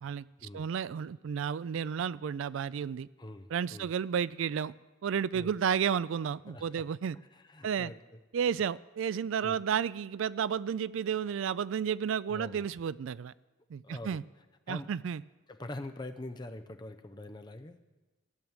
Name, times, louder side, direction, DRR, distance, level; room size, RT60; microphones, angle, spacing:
voice 1, 0.5-3.1 3.5-4.7 5.0-7.2 7.6-7.9 8.3-13.3 13.7-14.2 14.7-15.2, right 7 dB, 65° right, 18 dB, 0.3 m, -32 dB
voice 2, 3.2-3.9 5.3-5.5 6.5-6.8 7.3-8.2 9.4-9.6 11.2-11.3 12.3-12.6 13.8-14.2 14.7-14.9 15.5-17.8, left 1 dB, 20° left, 7 dB, 0.6 m, -44 dB
14.0 x 6.2 x 8.8 m, 1.2 s
head